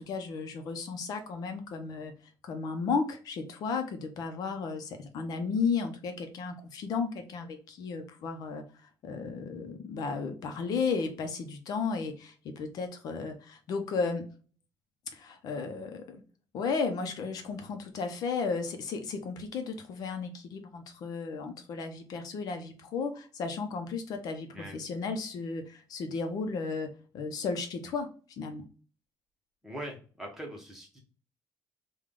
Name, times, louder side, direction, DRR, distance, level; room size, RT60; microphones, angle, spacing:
voice 1, 0.0-2.1 2.4-14.2 15.1-16.2 16.5-26.9 27.1-28.6, left 5 dB, 65° left, 6 dB, 0.7 m, -34 dB
voice 2, 29.6-31.0, right 1 dB, 5° right, -1 dB, 1.0 m, -41 dB
3.5 x 2.3 x 3.7 m, 0.38 s
cardioid pair, 145°, 7 cm